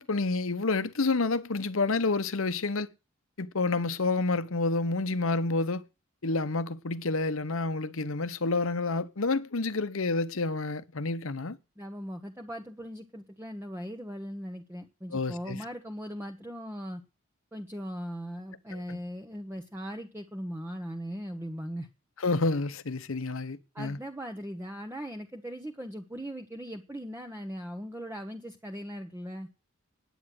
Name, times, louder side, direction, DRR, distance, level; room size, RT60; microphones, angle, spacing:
voice 1, 0.0-2.9 3.4-5.8 6.2-11.6 15.1-15.6 18.7-19.0 22.2-24.0, left 3 dB, 70° left, 1.0 m, -29 dB
voice 2, 11.8-17.0 17.5-21.9 23.7-29.5, equal, 10° right, 1.1 m, -39 dB
9.9 x 9.1 x 7.8 m
head